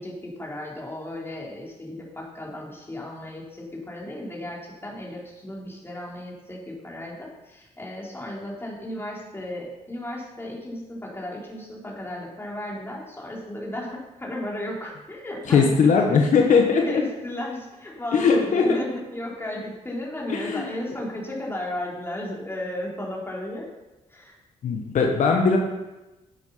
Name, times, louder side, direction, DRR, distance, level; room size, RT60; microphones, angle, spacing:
voice 1, 0.0-16.2 16.8-23.7 24.1-24.4, left 1 dB, 15° left, -3 dB, 3.8 m, -34 dB
voice 2, 15.5-17.0 18.1-18.8 20.3-20.7 24.6-25.6, left 5 dB, 70° left, 2 dB, 1.3 m, -19 dB
10.5 x 8.1 x 5.6 m, 1.1 s
cardioid pair, 80°, 13 cm